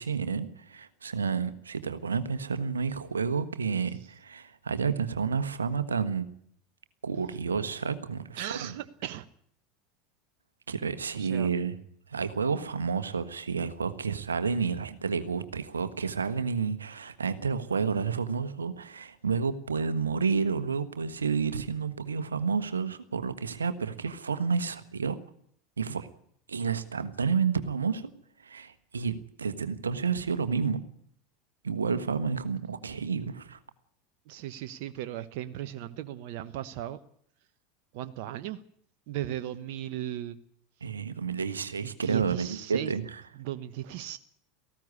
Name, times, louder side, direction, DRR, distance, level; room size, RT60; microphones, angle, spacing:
voice 1, 0.0-6.3 7.0-8.7 10.7-11.7 12.1-25.2 25.8-26.1 26.5-28.1 28.4-30.8 31.6-33.6 40.8-43.2, right 5 dB, 85° right, 11 dB, 1.4 m, -30 dB
voice 2, 8.4-9.3 11.1-11.5 34.3-37.0 37.9-38.6 39.1-40.4 41.8-42.9 43.4-44.2, right 12 dB, 60° right, 11 dB, 1.1 m, -36 dB
18.5 x 15.5 x 9.7 m, 0.65 s
hypercardioid pair, 85°, 0 cm